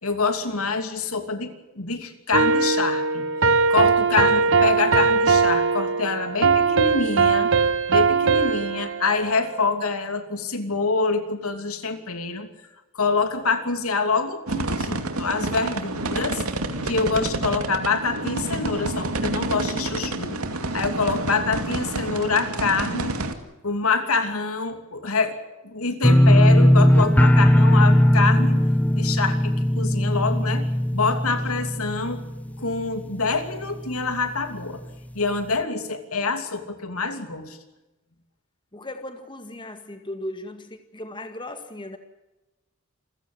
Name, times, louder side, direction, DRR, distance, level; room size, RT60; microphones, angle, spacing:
voice 1, 0.0-3.3 3.7-7.5 7.9-12.5 12.9-16.4 16.8-20.4 20.7-23.2 23.6-25.4 25.6-28.7 28.9-32.2 32.6-34.8 35.1-37.6, left 4 dB, 75° left, 8 dB, 2.9 m, -26 dB
sound 1, 2.3-9.6, right 4 dB, 60° right, 1.3 m, -20 dB
sound 2, 14.5-23.3, right 2 dB, 80° right, 2.4 m, -28 dB
sound 3, 26.0-32.9 33.2-33.7 34.1-34.2, equal, 5° left, 0.8 m, -18 dB
voice 2, 38.7-42.0, left 1 dB, 20° left, 7 dB, 1.8 m, -37 dB
28.0 x 15.5 x 7.8 m, 1.0 s
head